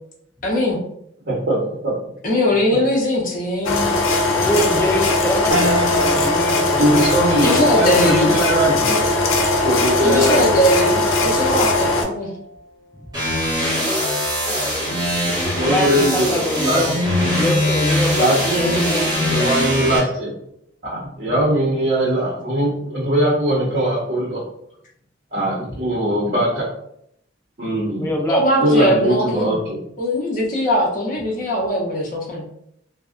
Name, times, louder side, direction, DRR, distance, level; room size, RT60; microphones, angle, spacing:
voice 1, 0.4-0.8 2.2-3.9 7.4-8.3 10.0-12.3 28.3-29.6 30.0-32.5, equal, 45° left, -2 dB, 0.6 m, -20 dB
voice 2, 1.2-1.9 6.8-9.0 9.6-10.5 15.3-17.5 18.2-20.3 20.8-24.4 25.3-26.7 27.6-28.1 28.6-29.8, right 1 dB, 50° right, -7 dB, 0.7 m, -20 dB
sound 1, 3.7-12.0, left 2 dB, 85° left, 0.4 m, -19 dB
voice 3, 4.4-7.8 15.6-17.0 17.4-18.3 18.6-19.3 28.0-28.4, left 1 dB, 10° left, 0 dB, 0.4 m, -24 dB
sound 2, 5.5-15.1 15.6-15.7 17.0-17.5, right 1 dB, 85° right, 0.6 m, -31 dB
sound 3, 13.1-20.0, left 1 dB, 20° right, 1.1 m, -22 dB
2.6 x 2.0 x 2.4 m, 0.73 s
head